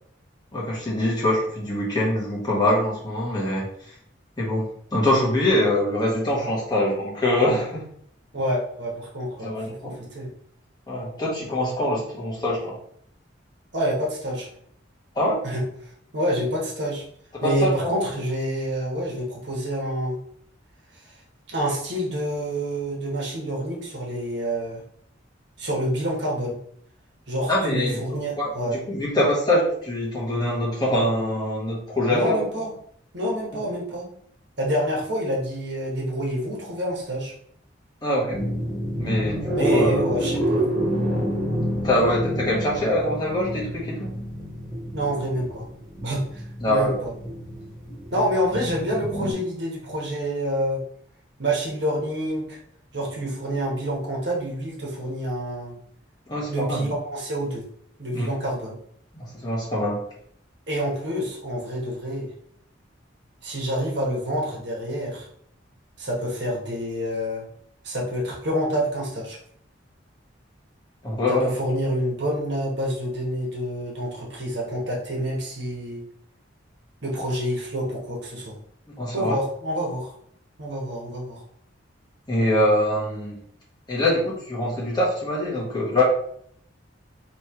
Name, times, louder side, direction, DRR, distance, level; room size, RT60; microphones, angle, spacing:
voice 1, 0.5-3.7 4.4-7.8 9.4-9.9 10.9-12.7 15.2-15.4 17.4-18.0 27.5-32.4 38.0-38.4 39.0-40.3 41.8-44.1 46.6-47.0 56.3-56.9 58.1-58.3 59.1-60.0 71.0-71.5 78.9-79.4 82.3-83.4 83.9-86.0, left 1 dB, 20° left, -5 dB, 1.1 m, -24 dB
voice 2, 8.3-9.5 9.8-10.3 13.7-14.5 15.4-15.6 16.1-17.0 17.4-20.2 21.5-24.8 25.6-26.6 27.3-28.8 32.1-32.7 33.1-34.1 34.6-37.3 39.5-40.7 44.9-45.7 46.0-47.1 48.1-50.8 51.4-52.6 52.9-55.7 56.5-57.7 58.0-58.8 60.7-62.3 63.4-65.3 66.0-67.4 67.8-69.4 71.3-76.0 77.0-78.6 79.1-80.1 80.6-81.4, equal, 60° right, -3 dB, 1.3 m, -27 dB
sound 1, 38.3-49.3, equal, 5° left, 1.6 m, -28 dB
3.2 x 3.1 x 4.4 m, 0.65 s
head